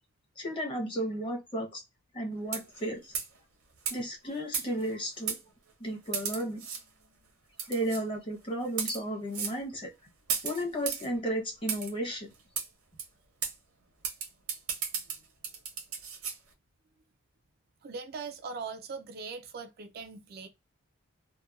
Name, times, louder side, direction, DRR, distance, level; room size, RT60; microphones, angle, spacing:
voice 1, 0.4-1.8 2.1-3.1 3.9-5.4 5.8-6.6 7.7-9.9 10.4-12.3, right 1 dB, 25° left, 0.8 m, -33 dB
sound 1, 2.4-2.8 3.1-3.4 3.9-4.0 4.5-4.9 5.3-5.4 6.1-6.8 7.6-8.0 8.7-9.0 9.3-9.6 10.3-11.1 11.7-11.9 12.6-12.7 13.0-13.1 13.4-13.5 14.0-16.4, right 7 dB, 75° right, 0.8 m, -34 dB
voice 2, 17.8-20.5, right 4 dB, 45° right, 0.4 m, -40 dB
2.8 x 2.1 x 2.3 m
head